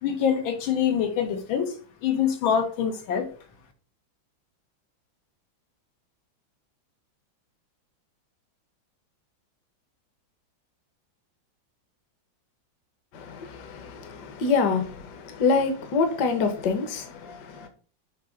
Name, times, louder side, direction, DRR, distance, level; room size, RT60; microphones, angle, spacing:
voice 1, 0.0-1.7 2.0-3.3, left 8 dB, 90° left, 1.9 m, -25 dB
voice 2, 13.1-17.7, left 4 dB, 65° left, 1.5 m, -26 dB
7.3 x 2.8 x 5.0 m
omnidirectional pair, 2.1 m